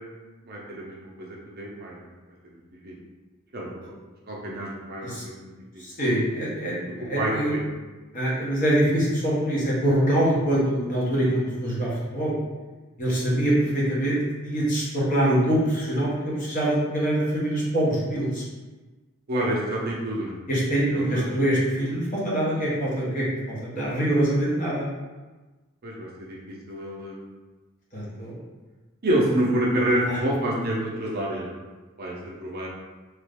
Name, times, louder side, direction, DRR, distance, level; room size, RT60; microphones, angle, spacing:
voice 1, 0.4-2.1 2.5-2.9 3.5-3.9 4.3-5.5 7.1-7.6 13.3-13.4 19.3-20.4 20.8-21.3 21.8-21.9 25.8-27.2 29.0-31.5 32.0-32.7, right 1 dB, 45° right, -3 dB, 0.6 m, -28 dB
voice 2, 5.8-7.5 8.1-12.3 13.0-14.2 14.4-18.4 20.5-24.9 27.9-28.4 30.0-30.2, right 1 dB, 35° left, -7 dB, 1.0 m, -24 dB
3.0 x 2.5 x 3.4 m, 1.2 s
head